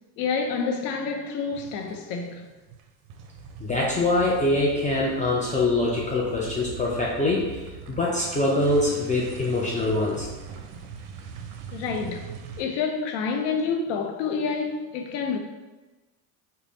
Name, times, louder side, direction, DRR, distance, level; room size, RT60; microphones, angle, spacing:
voice 1, 0.2-2.5 11.7-15.4, left 5 dB, 75° left, 0.7 m, -28 dB
sound 1, 1.5-2.3 2.6-12.6, right 5 dB, 65° right, 0.6 m, -41 dB
voice 2, 3.6-7.6 8.0-10.3, left 2 dB, 15° left, 0.5 m, -24 dB
3.4 x 2.2 x 3.9 m
supercardioid pair, 100°, 45 cm